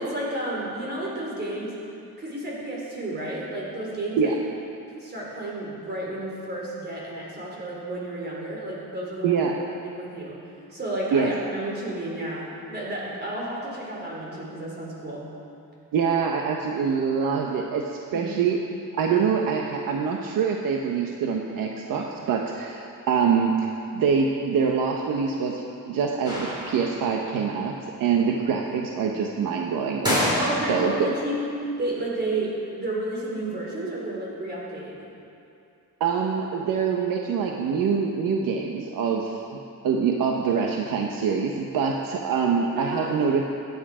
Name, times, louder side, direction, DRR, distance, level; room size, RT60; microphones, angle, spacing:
voice 1, 0.0-1.8 2.2-4.4 5.0-9.4 9.8-10.4 10.7-15.3 18.1-18.3 30.4-31.5 31.8-35.1 42.7-43.2, right 1 dB, 30° right, -4 dB, 4.2 m, -31 dB
voice 2, 9.2-9.5 11.1-11.3 15.9-18.6 18.9-30.3 30.7-31.1 36.0-39.4 39.8-43.5, right 6 dB, 90° right, 0 dB, 1.2 m, -25 dB
sound 1, 26.2-27.2 30.0-31.0, left 1 dB, 15° right, 4.2 m, -27 dB
24.0 x 10.0 x 5.0 m, 2.6 s
wide cardioid pair, 175°, 33 cm